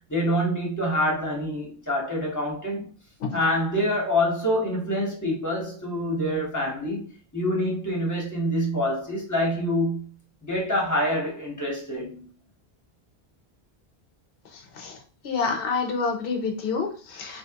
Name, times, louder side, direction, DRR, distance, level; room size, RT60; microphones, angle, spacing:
voice 1, 0.1-2.9 3.3-7.1 7.3-10.0 10.4-12.3, equal, 15° left, 1.1 m, -26 dB
voice 2, 15.2-17.4, left 4 dB, 60° left, 1.0 m, -28 dB
3.5 x 2.8 x 2.8 m
omnidirectional pair, 1.1 m